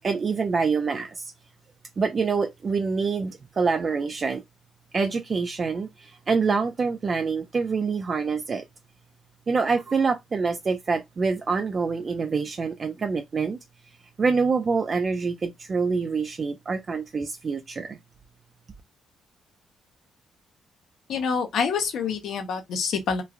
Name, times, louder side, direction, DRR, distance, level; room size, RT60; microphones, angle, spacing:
voice 1, 0.0-1.3 2.0-4.4 4.9-8.7 9.5-13.6 14.2-18.0, right 4 dB, 40° right, 0.3 m, -26 dB
voice 2, 21.1-23.2, left 6 dB, 75° left, 0.7 m, -26 dB
3.1 x 2.3 x 2.4 m
cardioid pair, 90°, 0 cm